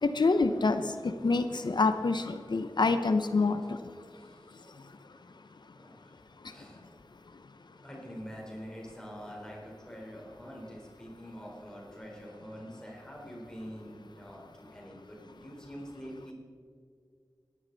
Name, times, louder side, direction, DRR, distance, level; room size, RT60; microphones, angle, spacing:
voice 1, 0.0-3.8, left 3 dB, 80° left, 9 dB, 0.7 m, -27 dB
voice 2, 4.1-4.6 5.7-6.0 6.5-6.8 7.8-16.3, equal, 10° left, -3 dB, 3.9 m, -45 dB
17.5 x 12.5 x 4.0 m, 2.2 s
wide cardioid pair, 60°, 8 cm